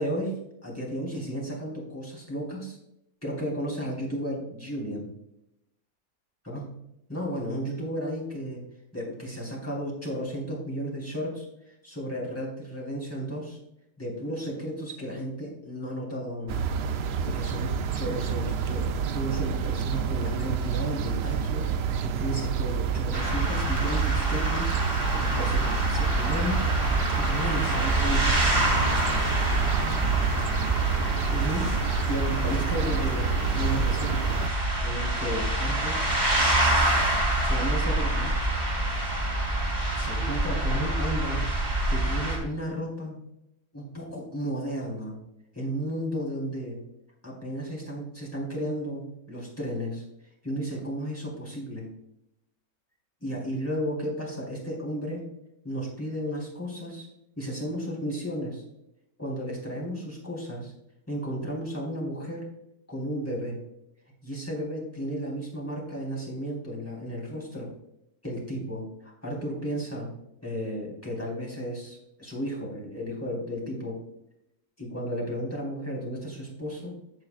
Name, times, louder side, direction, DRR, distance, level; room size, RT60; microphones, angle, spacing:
voice 1, 0.0-2.8 3.2-5.1 6.4-6.7 7.1-8.6 8.9-13.6 14.0-16.6 17.2-24.8 25.1-26.7 27.2-28.4 31.3-31.7 32.1-34.2 34.8-36.0 37.4-38.3 39.9-41.4 41.9-43.2 43.7-45.2 45.5-46.8 47.2-50.0 50.4-51.8 53.2-55.2 55.6-57.1 57.4-58.6 59.2-60.7 61.1-62.5 62.9-63.6 64.2-67.7 68.2-70.1 70.4-74.0 74.8-76.9, equal, 10° left, -4 dB, 3.6 m, -33 dB
sound 1, 16.5-34.5, right 6 dB, 65° right, 0.6 m, -29 dB
sound 2, 23.1-42.4, right 1 dB, 30° right, 3.2 m, -26 dB
15.0 x 7.6 x 2.4 m, 0.84 s
omnidirectional pair, 1.6 m